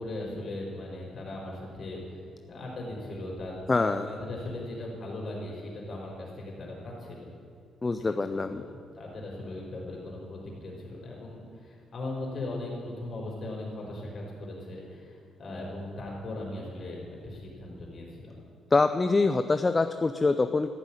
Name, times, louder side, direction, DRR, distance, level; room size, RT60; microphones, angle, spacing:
voice 1, 0.0-2.2 2.5-7.3 8.0-8.2 8.5-18.4, left 2 dB, 40° left, -2 dB, 4.7 m, -38 dB
voice 2, 3.7-4.1 7.8-8.6 18.7-20.7, left 3 dB, 20° left, 9 dB, 0.4 m, -25 dB
14.0 x 7.5 x 9.8 m, 2.2 s
cardioid pair, 135°, 0 cm